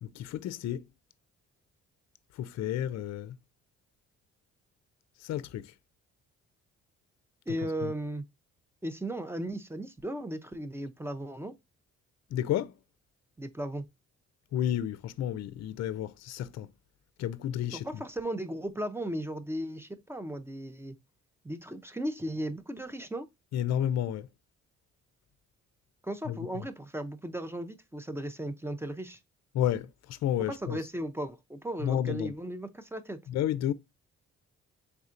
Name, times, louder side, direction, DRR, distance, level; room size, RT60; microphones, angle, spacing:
voice 1, 0.0-0.8 2.4-3.4 5.2-5.7 7.8-7.9 12.3-12.7 14.5-16.7 17.2-17.9 23.5-24.3 26.3-26.6 29.5-30.8 31.8-32.3 33.3-33.7, left 11 dB, 60° left, 0.5 m, -31 dB
voice 2, 7.5-8.2 8.8-11.5 13.4-13.8 17.7-20.9 21.4-23.3 26.0-29.2 30.4-33.2, right 1 dB, 10° right, 0.5 m, -36 dB
4.1 x 3.5 x 2.5 m
cardioid pair, 90°, 30 cm